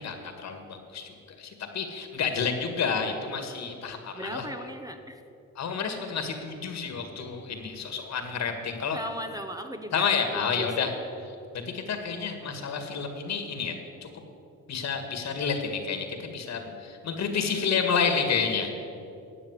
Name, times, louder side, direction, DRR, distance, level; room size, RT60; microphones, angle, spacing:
voice 1, 0.0-4.5 5.6-9.0 9.9-10.9 11.5-14.1 14.7-18.7, left 6 dB, 60° left, 6 dB, 2.0 m, -30 dB
voice 2, 4.1-5.2 8.9-10.9, right 1 dB, 10° right, 6 dB, 1.0 m, -37 dB
13.0 x 8.9 x 8.3 m, 2.7 s
cardioid pair, 90°, 30 cm